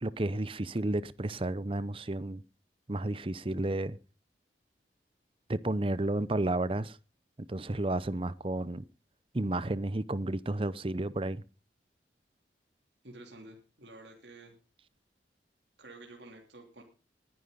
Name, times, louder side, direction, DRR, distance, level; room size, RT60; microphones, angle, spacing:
voice 1, 0.0-2.4 2.9-4.0 5.5-7.0 7.5-8.8 9.3-11.4, right 1 dB, 30° right, 0.7 m, -32 dB
voice 2, 13.0-14.6 15.8-16.8, right 2 dB, 75° right, 3.1 m, -50 dB
20.0 x 10.5 x 4.0 m
head